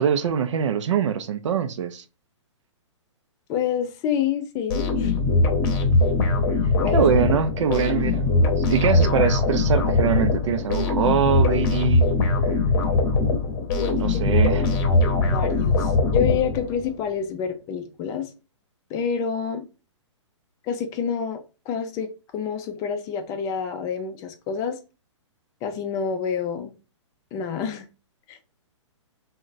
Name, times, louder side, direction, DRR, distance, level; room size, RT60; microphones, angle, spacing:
voice 1, 0.0-2.0 6.9-12.1 14.0-14.7, right 8 dB, 70° right, 0.4 m, -23 dB
voice 2, 3.5-5.1 6.8-7.0 13.7-18.3 18.9-19.7 20.6-24.8 25.6-26.7 27.3-27.9 28.3-28.4, left 7 dB, 20° left, 0.4 m, -28 dB
sound 1, 4.7-16.9, left 3 dB, 40° left, 0.7 m, -21 dB
2.3 x 2.1 x 3.8 m
hypercardioid pair, 135°, 16 cm